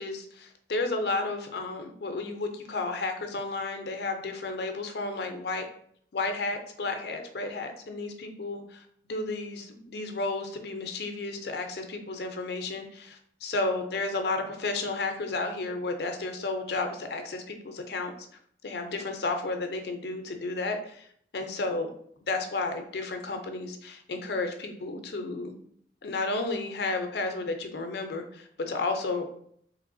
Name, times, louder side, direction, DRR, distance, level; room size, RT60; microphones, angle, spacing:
voice 1, 0.0-5.7 6.1-8.8 9.1-18.1 18.6-21.1 21.3-21.9 22.2-25.5 26.0-29.2, left 3 dB, 65° left, 5 dB, 0.5 m, -32 dB
3.3 x 2.9 x 2.5 m, 0.66 s
head